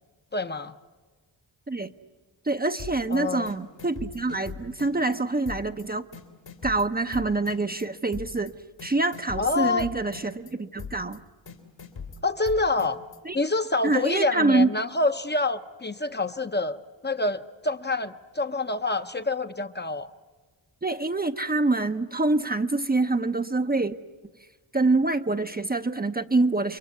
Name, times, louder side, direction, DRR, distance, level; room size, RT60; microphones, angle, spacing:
voice 1, 0.3-0.7 3.1-3.5 9.4-9.9 12.2-13.0 13.3-16.8 17.0-20.1, left 3 dB, 25° left, 9 dB, 0.9 m, -27 dB
voice 2, 2.4-6.0 6.6-8.5 8.8-11.2 13.2-13.4 13.8-14.7 20.8-24.0 24.7-26.8, right 2 dB, 20° right, 8 dB, 0.8 m, -25 dB
sound 1, 2.8-3.2 3.5-5.2 5.5-5.8 6.1-7.8 8.1-8.5 8.8-10.5 10.8-11.2 11.5-13.2, left 5 dB, 75° left, 3.2 m, -40 dB
29.5 x 23.0 x 8.4 m, 1.3 s
cardioid pair, 55°, 45 cm